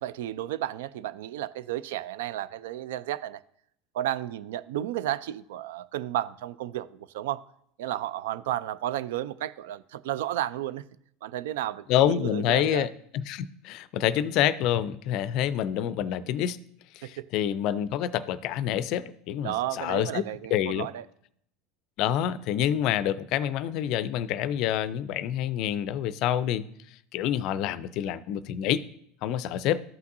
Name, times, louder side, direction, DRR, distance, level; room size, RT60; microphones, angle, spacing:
voice 1, 0.0-3.4 3.9-7.4 7.8-10.8 11.2-12.9 17.0-17.3 19.4-21.1, right 13 dB, 70° right, 0.3 m, -32 dB
voice 2, 11.9-16.6 16.9-20.2 20.5-20.9 22.0-26.6 27.1-28.8 29.2-29.8, left 11 dB, 55° left, 0.4 m, -27 dB
14.0 x 5.8 x 2.6 m
hypercardioid pair, 80°, 0 cm